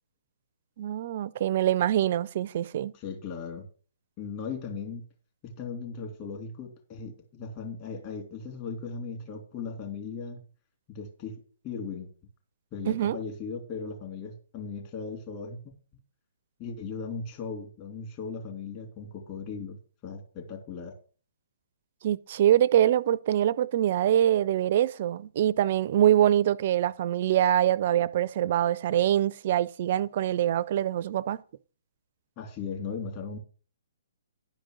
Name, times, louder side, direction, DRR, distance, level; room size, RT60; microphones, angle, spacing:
voice 1, 0.8-2.9 12.9-13.2 22.0-31.4, right 11 dB, 50° right, 0.5 m, -24 dB
voice 2, 2.9-3.7 4.2-5.1 5.4-10.5 10.9-12.1 12.7-15.7 16.6-19.8 20.0-20.9 32.4-33.4, left 5 dB, 35° left, 3.2 m, -37 dB
11.0 x 5.2 x 6.5 m
hypercardioid pair, 140°, 0 cm